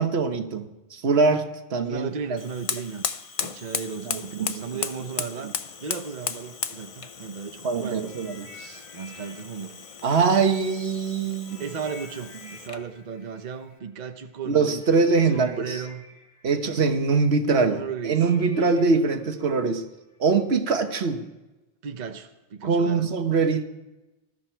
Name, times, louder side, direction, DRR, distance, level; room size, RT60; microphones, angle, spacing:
voice 1, 0.0-1.4 1.7-2.1 4.0-4.6 5.4-5.5 7.6-8.8 10.0-11.7 14.5-15.8 16.4-19.8 20.2-21.3 22.6-23.6, right 4 dB, 70° right, 7 dB, 1.4 m, -23 dB
voice 2, 1.9-3.0 3.4-5.5 5.8-8.1 8.9-9.8 11.6-14.8 15.3-16.1 16.6-17.0 17.5-18.2 21.8-23.1, right 6 dB, 45° right, 7 dB, 0.9 m, -35 dB
Fire, 2.3-12.9, left 6 dB, 40° left, 0.6 m, -36 dB
sound 1, 8.0-10.9 11.4-20.4 21.1-21.3, left 3 dB, 85° left, 4.8 m, -50 dB
19.5 x 13.5 x 4.5 m, 1.0 s
omnidirectional pair, 1.1 m